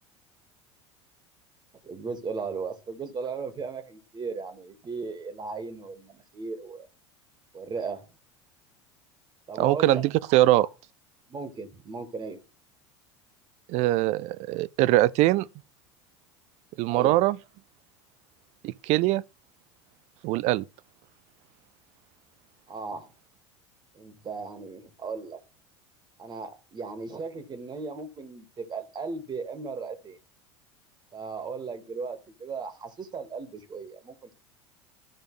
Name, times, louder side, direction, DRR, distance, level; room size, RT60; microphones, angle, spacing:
voice 1, 1.8-6.9 7.5-8.1 9.5-10.0 11.3-12.4 16.9-17.2 22.7-23.1 23.9-25.4 26.2-30.2 31.1-34.3, right 4 dB, 30° right, 1.7 m, -36 dB
voice 2, 9.6-10.7 13.7-15.5 16.8-17.4 18.6-19.2 20.2-20.6, right 17 dB, 50° right, 0.4 m, -22 dB
13.0 x 5.0 x 3.2 m
figure-of-eight pair, 75°, 15 cm